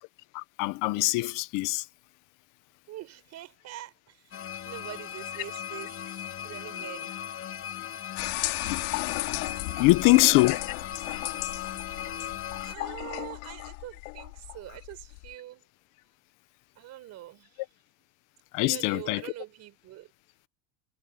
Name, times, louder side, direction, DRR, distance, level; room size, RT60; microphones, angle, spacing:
voice 1, 0.3-1.8 8.6-8.8 9.8-10.6 18.5-19.2, left 22 dB, 55° left, 1.2 m, -23 dB
voice 2, 2.9-6.0 6.4-7.4 9.7-10.5 11.7-15.7 16.7-17.7 18.6-20.1, right 14 dB, 45° right, 6.8 m, -44 dB
sound 1, 4.3-12.8, left 9 dB, 35° left, 2.3 m, -37 dB
sound 2, 8.2-15.3, left 28 dB, 75° left, 5.0 m, -35 dB
supercardioid pair, 135°, 37 cm